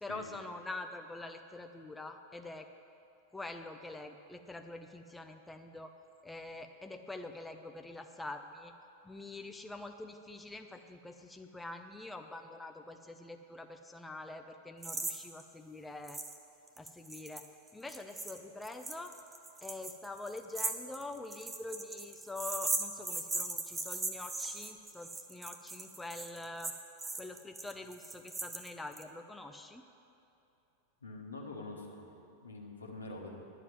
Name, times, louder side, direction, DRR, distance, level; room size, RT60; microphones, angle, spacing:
voice 1, 0.0-2.7 3.3-5.9 6.2-8.7 9.0-16.2 16.8-17.4 17.7-19.1 19.6-26.7 27.2-29.8, left 2 dB, 5° left, 6 dB, 0.5 m, -45 dB
sound 1, 14.8-15.1 15.4-15.5 16.1-16.4 16.7-29.0, right 3 dB, 15° right, 0.9 m, -39 dB
voice 2, 31.0-32.0 32.4-33.4, left 2 dB, 75° left, 0 dB, 1.5 m, -45 dB
11.0 x 7.4 x 7.7 m, 2.8 s
figure-of-eight pair, 90°, 0 cm